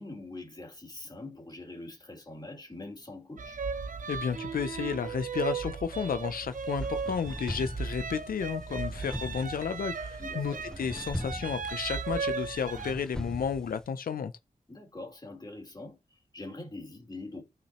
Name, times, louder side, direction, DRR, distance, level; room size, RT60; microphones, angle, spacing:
voice 1, 0.0-3.6 10.2-10.6 14.7-17.4, left 2 dB, 30° left, 2.8 m, -44 dB
sound 1, 3.4-12.9, right 5 dB, 65° right, 0.7 m, -36 dB
voice 2, 4.1-14.3, left 6 dB, 90° left, 0.5 m, -32 dB
sound 2, 6.5-13.9, equal, 5° left, 0.5 m, -41 dB
13.0 x 5.8 x 2.9 m
wide cardioid pair, 80°, 14 cm